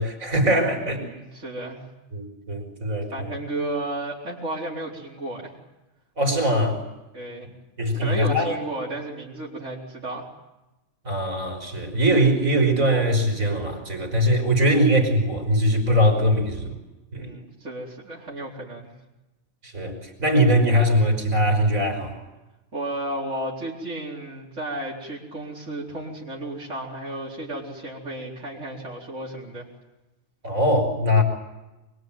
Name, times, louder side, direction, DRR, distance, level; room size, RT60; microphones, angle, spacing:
voice 1, 0.0-1.0 2.1-3.4 6.2-6.8 7.8-8.6 11.0-16.8 17.1-17.3 19.6-22.2 30.4-31.2, equal, 80° right, 4 dB, 6.0 m, -21 dB
voice 2, 0.6-1.8 3.1-5.5 7.1-7.5 8.0-10.3 17.1-18.9 22.7-29.7, right 1 dB, 60° right, -4 dB, 4.8 m, -33 dB
26.0 x 23.5 x 9.3 m, 1.0 s
omnidirectional pair, 1.4 m